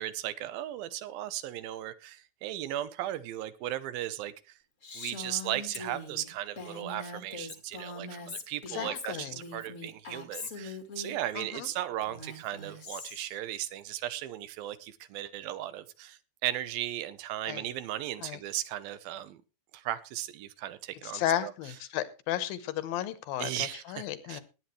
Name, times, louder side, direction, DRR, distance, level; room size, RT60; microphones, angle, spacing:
voice 1, 0.0-4.6 4.9-19.4 19.7-21.5 23.4-24.4, right 13 dB, 90° right, 2.6 m, -36 dB
Female speech woman speaking, 4.8-11.2 12.0-13.4, left 3 dB, 35° left, 1.2 m, -42 dB
voice 2, 8.7-9.4 11.4-11.7 17.5-17.7 18.2-18.4 21.0-24.4, left 12 dB, 80° left, 2.8 m, -34 dB
19.5 x 9.0 x 3.2 m
omnidirectional pair, 4.1 m